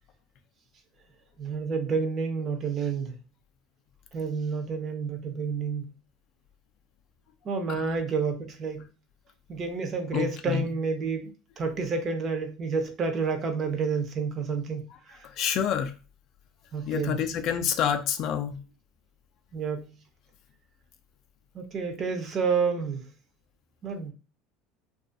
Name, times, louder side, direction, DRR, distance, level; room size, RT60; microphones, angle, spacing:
voice 1, 1.4-3.2 4.1-5.9 7.4-8.9 9.5-15.3 16.7-17.2 19.5-19.8 21.5-23.0 23.8-24.1, right 5 dB, 30° right, 0.5 m, -29 dB
voice 2, 10.1-10.7 15.4-15.9 16.9-18.6, left 8 dB, 45° left, 0.3 m, -28 dB
2.4 x 2.3 x 2.5 m
cardioid pair, 150°, 0 cm